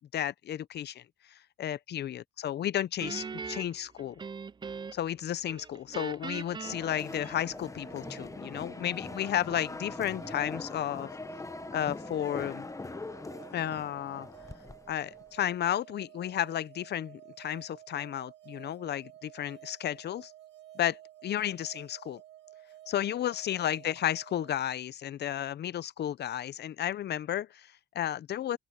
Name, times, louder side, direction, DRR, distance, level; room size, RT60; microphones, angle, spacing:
voice 1, 0.1-1.0 1.3-4.2 4.9-11.1 11.7-12.7 13.5-14.3 14.9-20.3 20.7-22.2 22.9-28.6, left 11 dB, 55° left, 0.7 m, -33 dB
Guitar, 3.0-5.2 5.5-7.8, right 5 dB, 20° right, 0.5 m, -41 dB
sound 1, 6.2-24.6, right 13 dB, 65° right, 1.9 m, -53 dB
sound 2, 6.6-15.3, left 3 dB, 15° left, 0.9 m, -42 dB
open air
cardioid pair, 90°, 20 cm